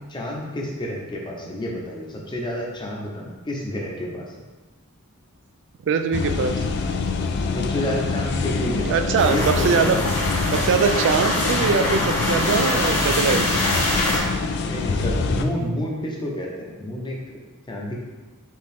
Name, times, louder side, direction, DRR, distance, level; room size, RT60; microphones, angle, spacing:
voice 1, 0.1-4.3 7.5-10.1 14.7-17.2 17.7-17.9, left 1 dB, 20° left, -1 dB, 0.7 m, -29 dB
voice 2, 5.8-6.6 8.9-10.0 10.5-13.6, right 6 dB, 55° right, 8 dB, 0.3 m, -22 dB
sound 1, 6.1-15.4, left 4 dB, 50° left, 0.3 m, -25 dB
sound 2, 9.2-14.2, left 1 dB, 85° left, 1.5 m, -24 dB
4.6 x 3.0 x 3.5 m, 1.2 s
head